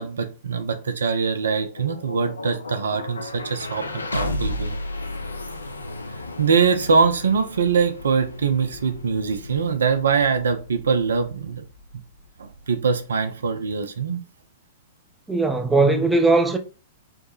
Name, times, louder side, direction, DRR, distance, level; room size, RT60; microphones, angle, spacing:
voice 1, 0.0-4.8 6.4-11.6 12.4-14.2, right 5 dB, 65° right, 0.4 m, -23 dB
sound 1, 1.4-13.2, left 1 dB, 75° left, 0.3 m, -34 dB
voice 2, 15.3-16.6, right 3 dB, 5° right, 0.4 m, -19 dB
3.5 x 2.1 x 2.4 m
figure-of-eight pair, 100°, 0 cm